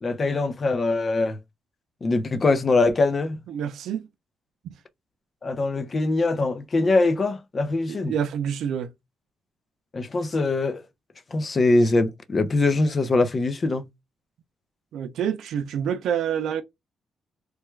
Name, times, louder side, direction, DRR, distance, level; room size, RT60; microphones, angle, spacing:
voice 1, 0.0-1.4 2.0-3.4 5.4-8.1 9.9-10.8 11.3-13.8, left 3 dB, 35° left, 0.6 m, -22 dB
voice 2, 3.5-4.1 4.6-4.7 7.9-8.9 14.9-16.6, right 8 dB, 80° right, 0.4 m, -27 dB
3.3 x 2.2 x 3.1 m
cardioid pair, 100°, 0 cm